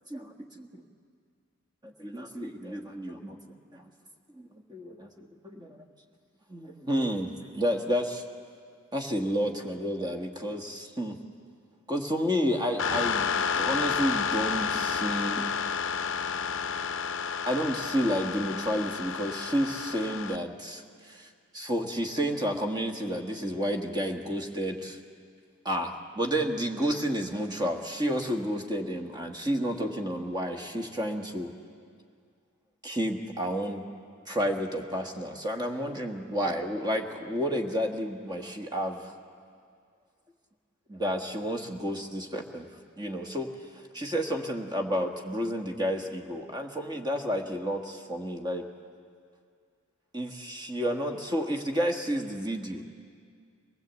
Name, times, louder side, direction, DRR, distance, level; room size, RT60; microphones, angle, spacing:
voice 1, 0.1-0.7 1.8-3.4 3.7-3.9 4.3-5.8 6.5-8.2 8.9-11.2 11.9-13.3 13.6-15.5 17.5-25.0 25.6-31.5 32.8-33.8 34.3-39.1 40.9-42.7 43.0-43.5 43.9-48.7 50.1-52.8, equal, 20° right, 3 dB, 1.4 m, -31 dB
sound 1, 12.8-20.4, left 6 dB, 55° left, 0.6 m, -30 dB
23.0 x 18.5 x 8.2 m, 2.1 s
head